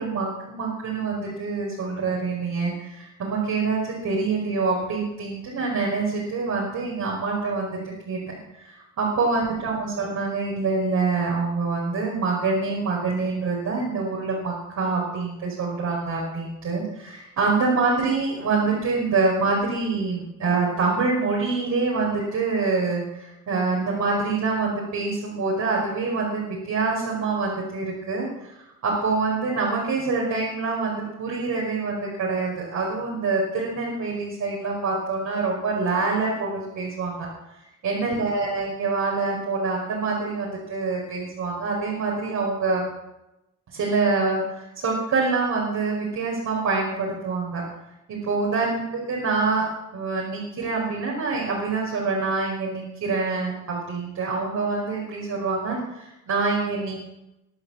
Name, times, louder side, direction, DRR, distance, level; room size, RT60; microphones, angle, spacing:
voice 1, 0.0-7.8 8.1-28.5 28.8-37.3 37.8-42.9 43.7-47.6 48.1-57.0, right 4 dB, 70° right, -4 dB, 5.3 m, -26 dB
23.0 x 8.2 x 7.4 m, 0.90 s
cardioid pair, 130°, 30 cm